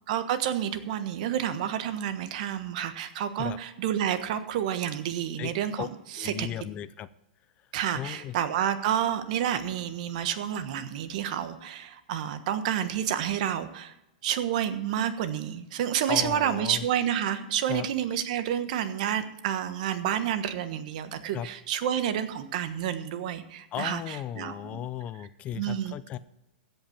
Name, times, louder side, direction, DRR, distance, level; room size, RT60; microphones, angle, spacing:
voice 1, 0.1-5.9 6.2-6.5 7.7-13.9 14.2-24.9 25.5-25.9, right 10 dB, 55° right, 10 dB, 1.3 m, -29 dB
voice 2, 5.4-5.9 6.2-7.1 7.9-8.3 16.1-16.9 17.6-17.9 21.3-21.5 23.7-26.2, left 11 dB, 30° left, 16 dB, 0.5 m, -36 dB
15.5 x 5.7 x 7.3 m, 0.91 s
hypercardioid pair, 145°, 5 cm